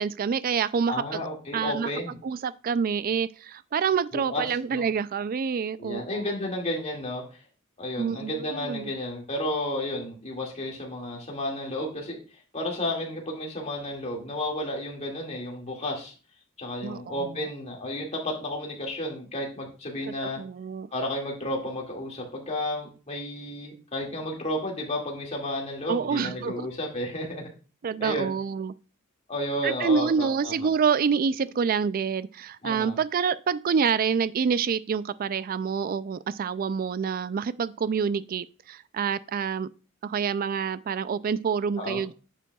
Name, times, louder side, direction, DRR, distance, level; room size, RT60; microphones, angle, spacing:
voice 1, 0.0-1.2 1.5-1.9 2.2-6.2 8.0-8.9 16.8-17.4 20.1-20.9 25.9-26.7 27.8-28.7 29.6-39.7 40.0-42.1, right 6 dB, 45° right, 0.3 m, -27 dB
voice 2, 0.9-2.2 4.1-4.4 4.7-4.9 5.8-7.2 7.8-12.2 12.5-16.1 16.6-20.4 20.9-27.5 28.0-28.3 29.3-30.7 32.6-33.0 41.8-42.0, left 1 dB, 30° left, 2.2 m, -32 dB
9.2 x 7.3 x 2.3 m
head